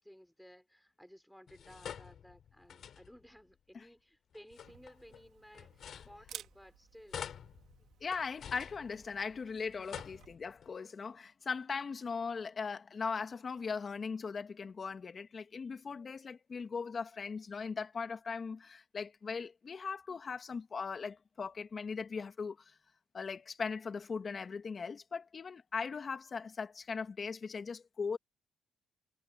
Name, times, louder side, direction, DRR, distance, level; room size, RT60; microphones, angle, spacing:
voice 1, 0.0-7.3, equal, ahead, 4.7 m, -57 dB
sound 1, 1.5-3.4 4.3-6.7 7.1-9.4 9.7-10.7, left 8 dB, 60° left, 6.4 m, -48 dB
Camera, 4.5-10.3, right 11 dB, 80° right, 3.0 m, -55 dB
voice 2, 8.0-22.7 23.1-28.2, left 5 dB, 40° left, 2.4 m, -39 dB
cardioid pair, 90°, 0 cm